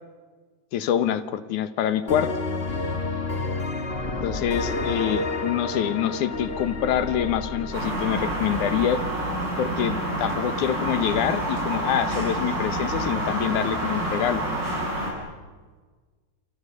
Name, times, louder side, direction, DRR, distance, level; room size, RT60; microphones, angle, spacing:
voice 1, 0.7-2.3 4.2-9.0 9.6-14.4, left 10 dB, 85° left, 12 dB, 2.7 m, -26 dB
sound 1, 2.1-9.7, left 2 dB, 25° left, 1.5 m, -30 dB
sound 2, 7.7-15.1, right 1 dB, 35° right, 8.1 m, -28 dB
28.5 x 28.5 x 6.8 m, 1.4 s
omnidirectional pair, 3.4 m